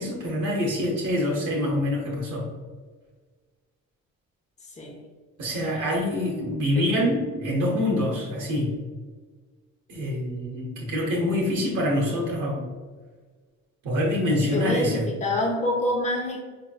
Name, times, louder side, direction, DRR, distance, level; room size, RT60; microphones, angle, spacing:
voice 1, 0.0-2.5 5.4-8.7 9.9-12.7 13.8-15.1, left 1 dB, 85° right, -3 dB, 1.0 m, -25 dB
voice 2, 14.5-16.4, left 1 dB, 25° left, -1 dB, 0.7 m, -26 dB
5.0 x 3.0 x 2.2 m, 1.4 s
cardioid pair, 90°, 30 cm